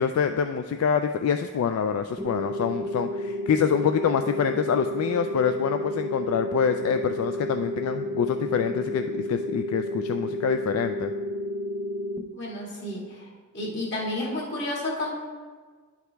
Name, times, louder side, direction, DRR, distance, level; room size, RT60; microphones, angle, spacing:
voice 1, 0.0-11.1, left 7 dB, 85° left, 7 dB, 0.3 m, -26 dB
sound 1, 2.2-12.2, left 1 dB, 10° right, 0.5 m, -31 dB
voice 2, 12.3-13.3 13.5-15.1, left 1 dB, 55° left, -3 dB, 1.9 m, -31 dB
10.5 x 4.8 x 3.4 m, 1.5 s
head